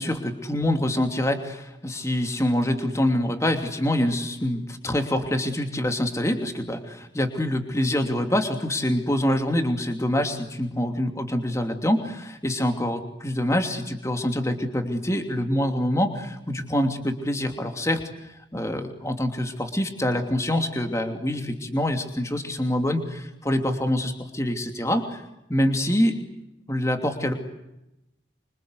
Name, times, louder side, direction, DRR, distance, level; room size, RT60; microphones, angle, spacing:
voice 1, 0.0-25.2 25.5-26.2 26.7-27.3, left 1 dB, 15° left, 5 dB, 2.8 m, -25 dB
27.0 x 25.5 x 8.2 m, 0.89 s
head